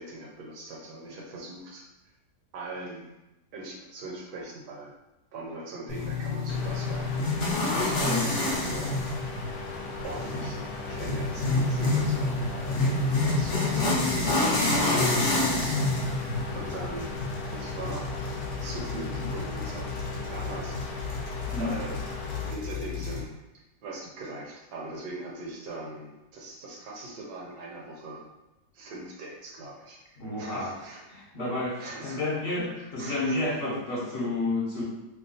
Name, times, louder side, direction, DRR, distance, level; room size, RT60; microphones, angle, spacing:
voice 1, 0.0-1.8 2.5-3.1 3.5-4.9 5.3-7.3 7.6-9.4 10.0-10.6 10.9-17.1 17.5-18.1 18.6-19.9 20.3-21.3 21.6-22.0 22.4-23.4 23.8-28.2 28.7-30.0 30.4-31.1 31.8-33.6, right 2 dB, 75° right, -1 dB, 1.2 m, -41 dB
sound 1, 5.9-23.2, left 2 dB, 55° left, 0.8 m, -29 dB
sound 2, 6.5-22.5, left 3 dB, 75° left, 1.1 m, -39 dB
voice 2, 30.2-30.8 31.1-34.8, left 2 dB, 35° left, -7 dB, 1.3 m, -30 dB
2.9 x 2.3 x 3.9 m, 0.97 s
omnidirectional pair, 1.8 m